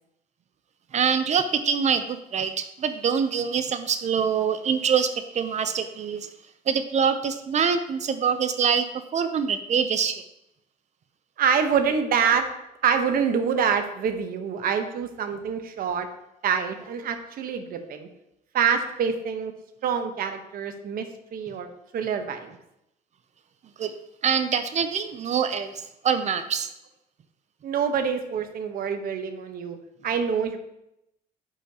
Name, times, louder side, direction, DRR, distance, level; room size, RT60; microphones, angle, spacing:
voice 1, 0.9-6.3 6.7-8.9 9.1-10.2 23.8-23.9 24.2-26.7, right 7 dB, 45° right, 10 dB, 0.6 m, -25 dB
voice 2, 11.4-12.5 12.8-16.1 16.4-18.1 18.5-19.5 19.8-21.1 21.3-21.7 21.9-22.5 27.6-29.8 30.0-30.6, right 7 dB, 60° right, 7 dB, 1.0 m, -26 dB
8.8 x 6.6 x 2.9 m, 0.84 s
cardioid pair, 110°, 17 cm